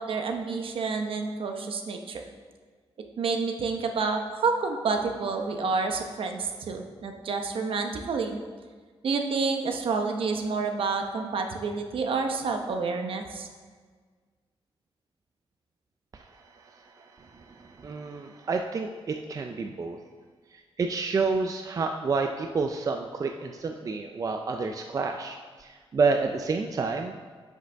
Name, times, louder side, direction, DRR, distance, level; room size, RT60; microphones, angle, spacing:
voice 1, 0.0-2.2 3.2-8.4 9.0-13.5, right 4 dB, 65° right, 4 dB, 0.9 m, -29 dB
voice 2, 16.1-20.0 20.5-27.2, right 4 dB, 35° right, 5 dB, 0.4 m, -30 dB
10.5 x 6.6 x 3.4 m, 1.6 s
wide cardioid pair, 145°, 10 cm